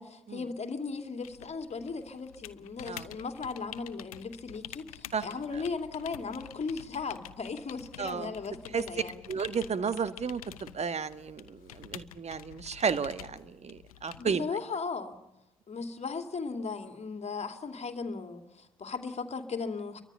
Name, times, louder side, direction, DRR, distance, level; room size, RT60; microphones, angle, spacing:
voice 1, 0.0-9.2 14.2-15.2 15.7-20.0, left 4 dB, 35° left, 7 dB, 2.6 m, -37 dB
sound 1, 1.2-14.4, left 13 dB, 75° left, 0.9 m, -48 dB
voice 2, 8.0-8.3 8.7-8.8 9.3-14.4, right 6 dB, 35° right, 13 dB, 1.7 m, -33 dB
30.0 x 24.0 x 5.6 m, 0.92 s
figure-of-eight pair, 45°, 18 cm